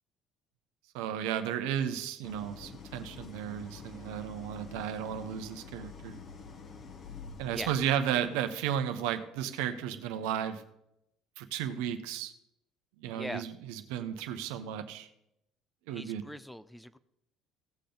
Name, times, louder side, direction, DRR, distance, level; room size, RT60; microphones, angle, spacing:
voice 1, 0.9-6.2 7.4-10.6 11.4-12.3 13.0-15.1 15.9-16.2, right 9 dB, 80° right, 8 dB, 0.9 m, -34 dB
Idling, 2.2-8.3, left 5 dB, 45° left, 1.3 m, -47 dB
voice 2, 13.1-13.5 15.9-17.0, left 1 dB, 5° left, 15 dB, 0.6 m, -41 dB
17.0 x 6.7 x 3.9 m, 0.83 s
supercardioid pair, 80°, 0 cm